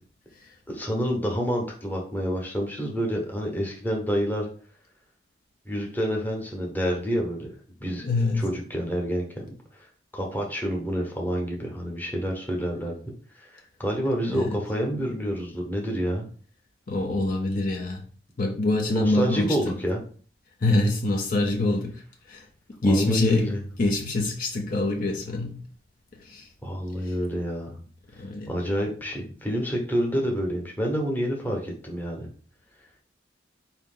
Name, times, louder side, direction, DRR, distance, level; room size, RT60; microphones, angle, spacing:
voice 1, 0.7-4.5 5.6-7.5 7.8-8.1 8.3-9.5 10.1-13.0 13.4-16.3 18.9-20.0 22.8-23.6 26.6-27.8 28.5-32.3, equal, 10° left, 1.0 m, -28 dB
voice 2, 8.0-8.4 14.3-14.6 16.9-18.0 18.4-19.8 20.6-22.0 22.3-22.5 22.8-23.5 23.8-25.6 26.2-26.5 27.0-27.1 28.2-28.5, left 2 dB, 45° left, 0.6 m, -25 dB
4.7 x 2.8 x 3.8 m
head